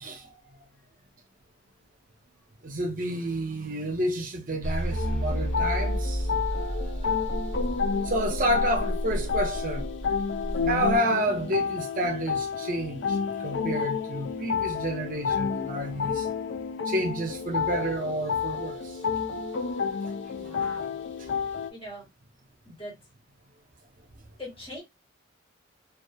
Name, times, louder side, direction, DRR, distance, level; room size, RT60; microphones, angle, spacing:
voice 1, 2.6-6.2 6.7-7.2 8.1-9.8 10.7-13.1 13.4-16.2 16.9-18.8, right 1 dB, 40° right, 0.6 m, -29 dB
sound 1, 4.6-11.0, equal, 5° left, 1.0 m, -31 dB
sound 2, 4.9-21.7, left 6 dB, 65° left, 0.4 m, -30 dB
voice 2, 20.3-21.1 21.4-22.1 22.6-22.9 24.4-24.8, left 1 dB, 30° left, 1.7 m, -42 dB
2.8 x 2.3 x 2.2 m
head